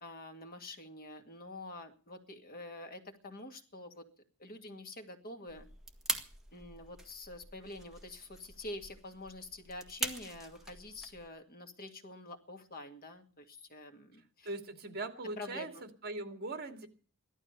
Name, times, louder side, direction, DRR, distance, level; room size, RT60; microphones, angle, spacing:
voice 1, 0.0-4.1 4.4-5.7 6.5-14.5 15.4-15.9, left 2 dB, 45° left, 6 dB, 2.1 m, -47 dB
sound 1, 5.5-11.3, right 2 dB, ahead, 1.8 m, -43 dB
voice 2, 14.4-15.7 16.0-16.9, right 2 dB, 50° right, 7 dB, 2.5 m, -40 dB
16.5 x 12.5 x 6.8 m, 0.39 s
head